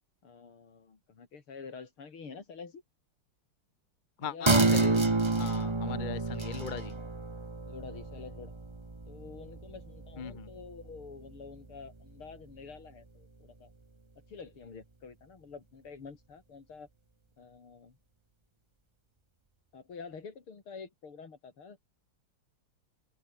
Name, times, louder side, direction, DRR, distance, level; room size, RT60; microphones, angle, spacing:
voice 1, 0.2-2.8 4.2-4.5 6.9-7.1 7.6-8.6 9.1-13.7 14.3-16.9 17.4-18.0 19.7-21.9, left 5 dB, 75° left, 4.1 m, -48 dB
voice 2, 4.2-6.9 10.2-10.5, left 7 dB, 35° left, 0.8 m, -39 dB
sound 1, 4.5-11.5 11.8-11.9, right 3 dB, 20° right, 1.0 m, -30 dB
open air
omnidirectional pair, 2.4 m